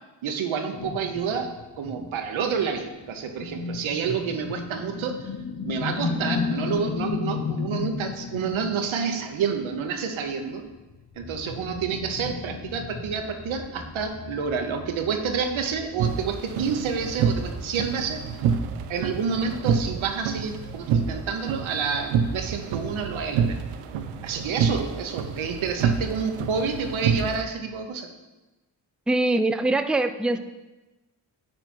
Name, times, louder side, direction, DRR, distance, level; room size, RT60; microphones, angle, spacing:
voice 1, 0.2-5.3 5.6-10.6 11.2-18.2 18.9-23.6 24.2-28.1, right 6 dB, 70° right, 5 dB, 1.1 m, -29 dB
sound 1, 0.7-9.2 9.5-9.8 10.7-16.1 16.4-16.5 16.8-16.9 17.2-20.0, left 5 dB, 35° left, 0.7 m, -34 dB
sound 2, 11.1-18.2, left 1 dB, 55° left, 2.9 m, -44 dB
sound 3, 16.0-27.4, right 6 dB, 85° right, 0.6 m, -28 dB
voice 2, 29.1-30.4, right 2 dB, ahead, 9 dB, 0.4 m, -23 dB
9.9 x 4.4 x 4.4 m, 1.1 s
supercardioid pair, 40°, 49 cm